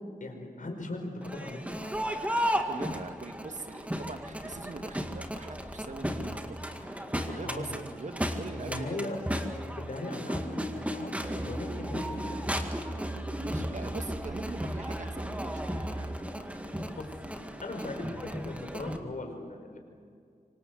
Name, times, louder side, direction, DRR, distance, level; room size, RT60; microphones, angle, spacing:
voice 1, 0.2-1.9 6.8-6.9 7.3-7.8 8.6-9.2 9.8-11.1 11.5-12.4 16.5-16.6 16.9-17.1 17.6-19.8, left 2 dB, 65° left, 3 dB, 5.1 m, -39 dB
Crowd, 1.2-19.0, equal, 10° right, 2.0 m, -35 dB
voice 2, 2.5-6.8 7.1-9.1 12.9-13.1 13.4-15.8, right 3 dB, 55° right, 7 dB, 2.0 m, -42 dB
Musical instrument, 11.2-16.3, right 2 dB, 25° right, 1.0 m, -40 dB
26.0 x 25.5 x 7.9 m, 2.3 s
wide cardioid pair, 85°, 15 cm